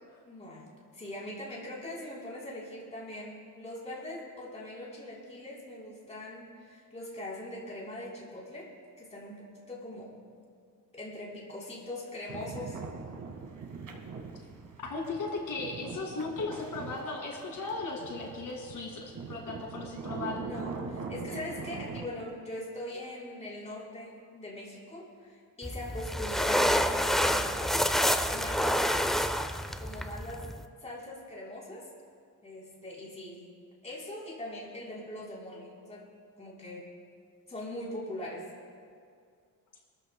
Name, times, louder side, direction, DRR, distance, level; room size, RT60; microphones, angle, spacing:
voice 1, 0.3-0.7 0.9-8.7 9.0-10.1 10.9-12.8 20.3-27.8 28.3-29.1 29.8-30.5 30.8-31.8 32.4-33.5 33.8-36.1 36.4-36.9 37.5-38.5, left 1 dB, 20° left, -5 dB, 3.6 m, -41 dB
sound 1, 12.3-22.1, right 4 dB, 60° right, 1.7 m, -42 dB
voice 2, 14.8-20.4, left 3 dB, 70° left, 0 dB, 2.2 m, -36 dB
sound 2, 25.6-30.6, equal, ahead, 0.4 m, -28 dB
26.5 x 13.5 x 2.2 m, 2.3 s
wide cardioid pair, 155°, 34 cm